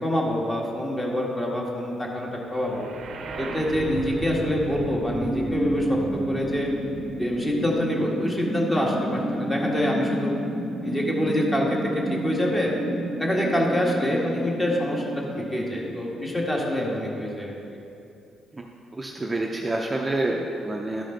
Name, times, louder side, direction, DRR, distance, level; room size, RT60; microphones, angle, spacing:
voice 1, 0.0-2.9 3.4-6.0 6.3-6.7 7.2-10.4 10.8-11.8 12.1-12.7 13.2-17.5, left 1 dB, 15° left, -2 dB, 1.6 m, -26 dB
sound 1, 2.6-16.6, right 1 dB, 65° right, 0.7 m, -31 dB
voice 2, 18.9-21.0, right 2 dB, 20° right, 0 dB, 0.6 m, -28 dB
12.0 x 5.2 x 3.8 m, 2.6 s
cardioid pair, 90°, 0 cm